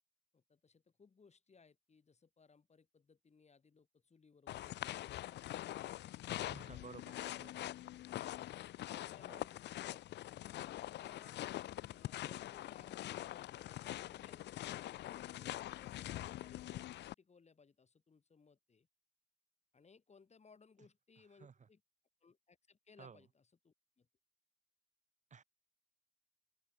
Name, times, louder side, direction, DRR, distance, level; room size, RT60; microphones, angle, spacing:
voice 1, 0.3-5.9 6.6-7.7 8.9-10.0 10.2-11.4 11.9-18.9 19.7-21.8 22.2-24.1, left 5 dB, 35° left, 4.1 m, -65 dB
sound 1, 4.5-17.1, left 14 dB, 60° left, 0.4 m, -44 dB
voice 2, 6.3-7.0 7.4-7.5 9.3-9.4 21.4-21.5 23.0-23.2 25.3-25.4, right 6 dB, 35° right, 1.3 m, -54 dB
open air
cardioid pair, 90°, 20 cm